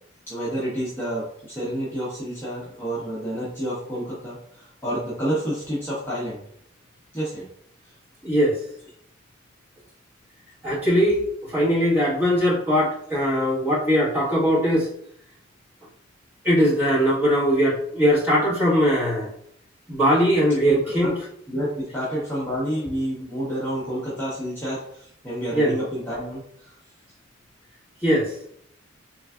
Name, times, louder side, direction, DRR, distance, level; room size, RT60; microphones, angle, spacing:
voice 1, 0.3-6.4 7.1-7.5 7.8-7.9 20.6-21.1 21.5-26.8, equal, 10° left, -9 dB, 0.8 m, -29 dB
voice 2, 8.2-8.6 10.6-14.9 16.4-19.3 19.9-21.1 25.5-25.8 28.0-28.4, equal, 10° right, -8 dB, 1.3 m, -20 dB
3.8 x 3.3 x 2.3 m, 0.69 s
head